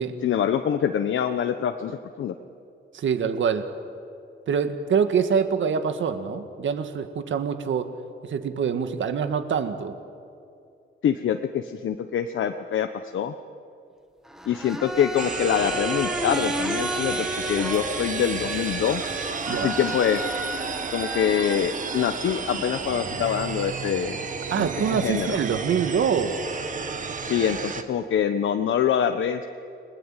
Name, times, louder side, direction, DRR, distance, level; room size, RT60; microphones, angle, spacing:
voice 1, 0.2-2.3 11.0-13.3 14.5-19.0 19.5-20.2 20.9-24.2 24.6-25.4 27.2-29.4, left 8 dB, 70° left, 7 dB, 1.1 m, -25 dB
voice 2, 2.9-3.7 4.5-7.9 8.2-9.9 19.5-19.7 24.5-26.4, right 6 dB, 65° right, 8 dB, 1.9 m, -25 dB
sound 1, 14.3-21.6, equal, ahead, 1.6 m, -33 dB
sound 2, 15.2-27.8, right 5 dB, 40° right, 1.7 m, -32 dB
30.0 x 21.5 x 9.2 m, 2.5 s
wide cardioid pair, 165°, 21 cm